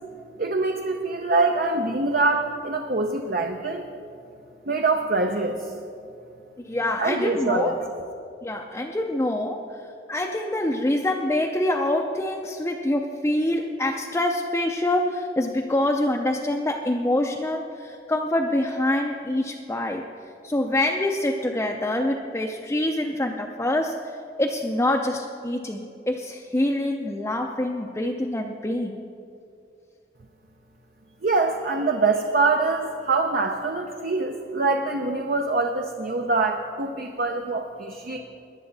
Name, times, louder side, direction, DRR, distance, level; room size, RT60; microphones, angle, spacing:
voice 1, 0.4-3.9 4.7-5.7 7.0-7.7 31.2-38.2, right 3 dB, 55° right, 3 dB, 0.7 m, -24 dB
voice 2, 6.6-7.7 8.4-9.6 10.1-20.0 20.4-23.9 24.4-29.0, left 1 dB, 15° left, 0 dB, 0.5 m, -25 dB
18.5 x 10.5 x 4.0 m, 2.5 s
head